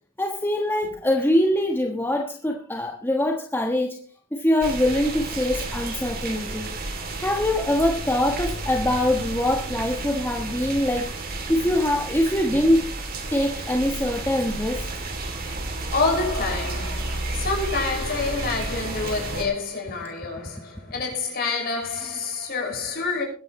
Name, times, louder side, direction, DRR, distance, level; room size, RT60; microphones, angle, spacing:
voice 1, 0.2-4.0 4.3-6.7 7.2-11.1 11.5-12.9 13.3-14.8, left 1 dB, 10° left, 1.2 m, -23 dB
sound 1, 4.6-19.4, right 2 dB, 45° right, 2.9 m, -31 dB
voice 2, 15.9-23.2, left 3 dB, 45° left, 6.0 m, -27 dB
22.0 x 10.5 x 3.1 m
head